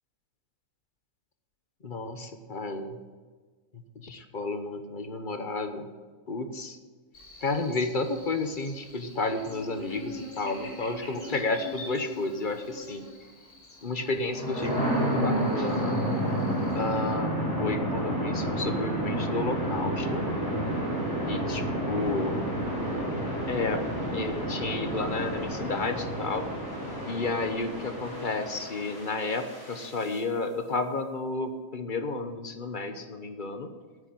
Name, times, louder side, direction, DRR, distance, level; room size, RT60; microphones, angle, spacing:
voice 1, 1.8-3.0 3.7-5.9 6.3-6.8 7.4-13.0 13.8-16.0 16.7-17.3 17.6-20.3 21.3-22.4 23.5-23.8 24.1-26.5 27.1-33.7, left 3 dB, 40° left, 7 dB, 1.0 m, -32 dB
Buzz, 7.1-17.1, left 2 dB, 85° left, 3.7 m, -45 dB
sound 1, 14.2-30.1, right 1 dB, 15° left, 4.4 m, -30 dB
9.6 x 8.2 x 9.4 m, 1.4 s
omnidirectional pair, 1.5 m